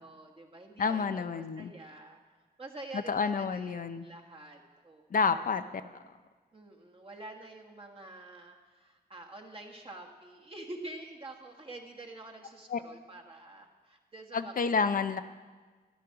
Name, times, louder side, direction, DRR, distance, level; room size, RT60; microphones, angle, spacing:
voice 1, 0.0-2.2 2.6-5.2 6.5-15.0, right 2 dB, 35° right, 1 dB, 1.6 m, -47 dB
voice 2, 0.8-1.7 2.9-4.0 5.1-6.0 12.7-12.8 14.3-15.2, left 5 dB, 55° left, 10 dB, 0.5 m, -29 dB
14.0 x 11.0 x 5.8 m, 1.4 s
wide cardioid pair, 165°, 17 cm